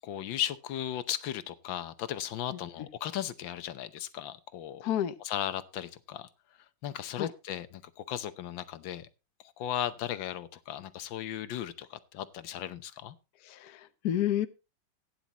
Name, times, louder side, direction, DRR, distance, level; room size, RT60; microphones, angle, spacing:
voice 1, 0.1-4.8 5.2-6.3 6.8-9.1 9.6-13.1, left 11 dB, 90° left, 13 dB, 1.6 m, -36 dB
voice 2, 4.8-5.1 7.2-7.3 13.4-14.5, left 11 dB, 60° left, 11 dB, 1.2 m, -30 dB
16.5 x 9.9 x 2.9 m, 0.28 s
omnidirectional pair, 2.0 m